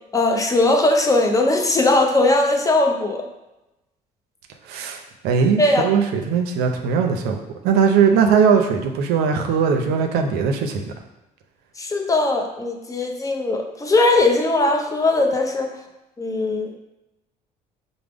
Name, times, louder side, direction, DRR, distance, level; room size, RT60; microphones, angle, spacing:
voice 1, 0.1-3.3 5.6-5.9 11.8-15.8 16.2-16.7, left 2 dB, 20° left, 3 dB, 0.5 m, -19 dB
voice 2, 4.6-7.4 7.6-10.9, right 6 dB, 85° right, 4 dB, 0.5 m, -19 dB
4.8 x 2.0 x 3.4 m, 0.96 s
cardioid pair, 90°, 16 cm